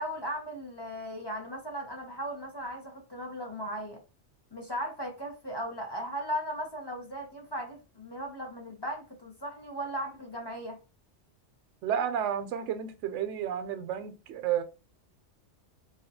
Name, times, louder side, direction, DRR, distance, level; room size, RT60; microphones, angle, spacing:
voice 1, 0.0-4.0 4.5-10.8, equal, 25° left, 0.6 m, -37 dB
voice 2, 11.8-14.6, right 9 dB, 80° right, 0.9 m, -31 dB
4.0 x 2.3 x 2.7 m
omnidirectional pair, 1.2 m